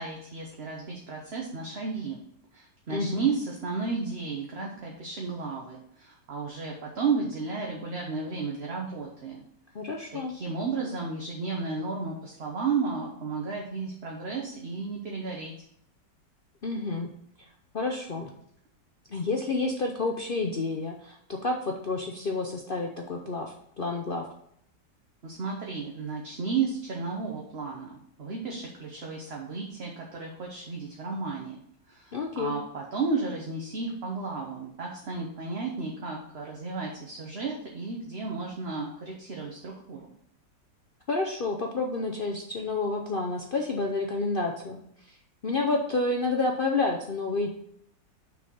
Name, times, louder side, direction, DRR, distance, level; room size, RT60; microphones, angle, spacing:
voice 1, 0.0-2.2 2.5-9.4 10.1-15.5 25.2-31.6 31.9-40.0, right 4 dB, 45° right, -1 dB, 1.0 m, -33 dB
voice 2, 9.7-10.3 16.6-17.1 17.7-18.3 19.1-24.3 32.1-32.6 41.1-44.8 45.4-47.5, left 3 dB, 70° left, 1 dB, 0.5 m, -29 dB
6.3 x 4.5 x 5.5 m, 0.69 s
omnidirectional pair, 1.9 m